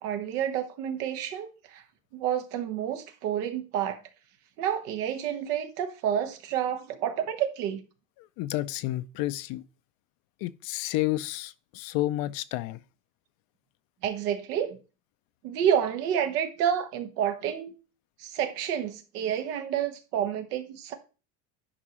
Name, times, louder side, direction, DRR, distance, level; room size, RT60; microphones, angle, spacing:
voice 1, 0.0-1.8 2.1-4.0 4.6-7.8 14.0-14.8 15.4-17.7 18.2-20.9, right 9 dB, 85° right, 1.5 m, -29 dB
voice 2, 8.2-9.6 10.4-12.8, left 16 dB, 50° left, 0.5 m, -31 dB
9.8 x 5.3 x 3.1 m
supercardioid pair, 125°, 45 cm